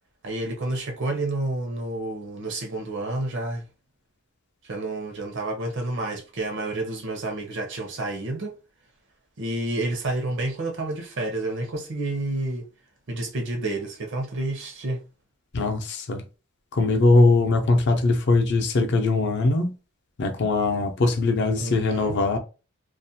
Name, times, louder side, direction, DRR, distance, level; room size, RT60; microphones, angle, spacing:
voice 1, 0.2-3.6 4.6-8.5 9.4-12.7 13.1-15.0 21.6-22.2, right 2 dB, 60° right, 0.7 m, -29 dB
voice 2, 15.5-16.2 16.7-19.7 20.2-22.4, left 3 dB, 60° left, 0.5 m, -21 dB
2.4 x 2.2 x 2.7 m
head